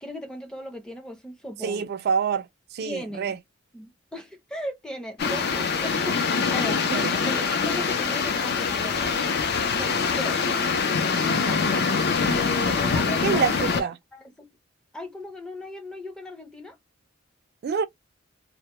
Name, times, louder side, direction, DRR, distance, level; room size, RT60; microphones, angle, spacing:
voice 1, 0.0-1.9 2.8-3.3 3.7-9.1 9.8-10.4 11.1-11.7 12.2-13.9 14.1-14.5 14.9-16.8, left 1 dB, 5° left, 0.5 m, -37 dB
voice 2, 1.6-3.4 6.9-7.1 13.2-14.0 17.6-17.8, right 6 dB, 55° right, 0.3 m, -26 dB
sound 1, 5.2-13.8, left 5 dB, 55° left, 0.5 m, -24 dB
2.1 x 2.0 x 2.9 m
head